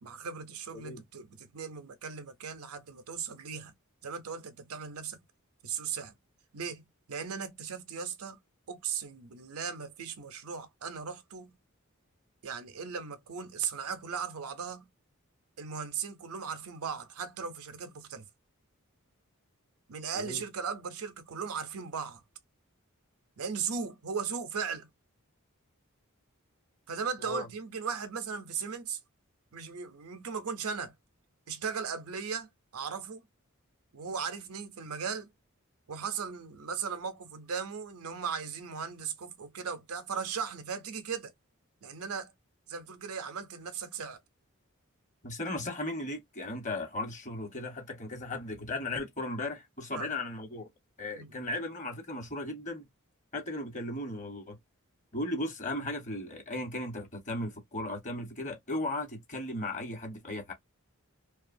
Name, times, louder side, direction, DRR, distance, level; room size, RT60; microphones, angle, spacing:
voice 1, 0.0-3.7 4.0-5.2 5.6-6.1 6.5-8.4 8.7-11.6 12.4-14.9 15.6-18.3 19.9-22.2 23.4-24.9 26.9-29.0 29.5-30.9 31.5-33.2 33.9-35.3 35.9-41.3 41.8-42.3 42.7-44.2 49.9-50.1 51.2-51.3, right 6 dB, 85° right, 0.6 m, -37 dB
voice 2, 45.2-50.7 51.0-52.9 53.3-54.6 55.1-60.5, left 2 dB, 35° left, 1.1 m, -36 dB
2.8 x 2.3 x 2.5 m
head